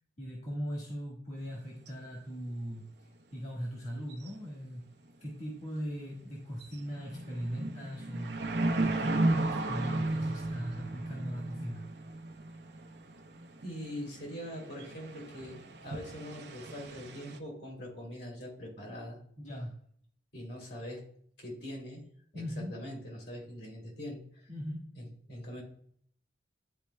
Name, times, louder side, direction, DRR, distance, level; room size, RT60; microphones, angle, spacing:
voice 1, 0.2-2.8 3.3-4.8 5.2-8.5 8.8-11.9 19.4-19.7 22.3-22.7 24.5-24.8, equal, 40° left, -3 dB, 1.6 m, -39 dB
sound 1, 1.5-1.6 1.9-2.0 4.1-4.5 4.8-4.9 5.4-5.7 6.2-6.3 6.5-17.4, right 2 dB, 65° right, 0.7 m, -35 dB
voice 2, 13.6-19.2 20.3-21.0 21.4-22.1 22.3-24.5 24.9-25.6, equal, 70° left, -1 dB, 2.5 m, -43 dB
11.0 x 4.3 x 2.2 m, 0.62 s
head